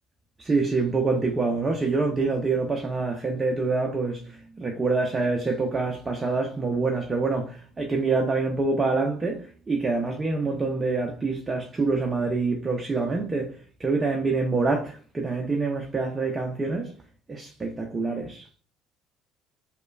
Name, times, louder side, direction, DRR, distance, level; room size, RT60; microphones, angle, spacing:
voice 1, 0.4-13.5 13.8-16.9 17.3-18.5, right 3 dB, 25° right, 0.5 m, -26 dB
3.0 x 2.2 x 2.3 m
figure-of-eight pair, 55°, 0 cm